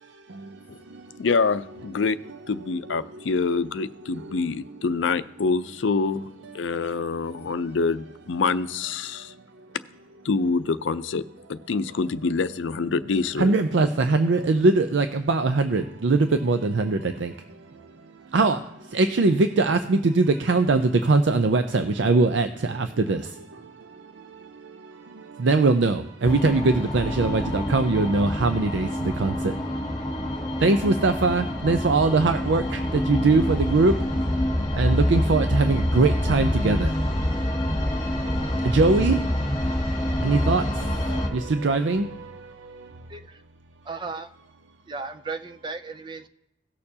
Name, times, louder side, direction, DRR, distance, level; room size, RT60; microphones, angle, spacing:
voice 1, 0.0-1.3 2.3-3.2 4.1-4.8 6.4-7.6 9.1-9.7 13.4-34.1 34.7-43.1, right 3 dB, 75° right, 0.5 m, -23 dB
voice 2, 1.2-2.2 2.5-6.3 6.5-9.3 10.2-11.2 11.5-13.5, left 4 dB, 85° left, 0.5 m, -26 dB
sound 1, 26.2-41.3, left 1 dB, 25° left, 2.2 m, -26 dB
voice 3, 43.1-43.4 43.9-44.3 44.9-46.3, right 4 dB, 25° right, 0.4 m, -35 dB
17.5 x 6.7 x 2.8 m
head